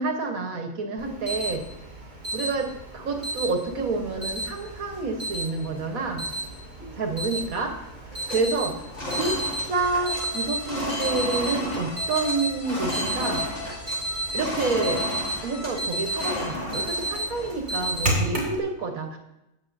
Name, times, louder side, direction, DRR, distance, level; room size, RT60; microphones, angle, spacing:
voice 1, 0.0-1.6 2.3-6.3 6.9-7.7 8.3-9.4 9.7-13.4 14.3-15.1 15.4-19.2, right 3 dB, 75° right, 4 dB, 1.5 m, -28 dB
Alarm, 1.0-18.6, right 1 dB, 50° right, 3.2 m, -32 dB
sound 1, 3.1-4.2 4.6-4.7 4.9-5.3 5.7-6.0 6.2-7.3 7.6-7.8 8.1-14.0 14.3-18.1, left 1 dB, 40° left, 2.8 m, -34 dB
sound 2, 9.7-16.3, left 5 dB, 65° left, 1.4 m, -40 dB
18.0 x 7.0 x 2.6 m, 0.90 s
omnidirectional pair, 1.5 m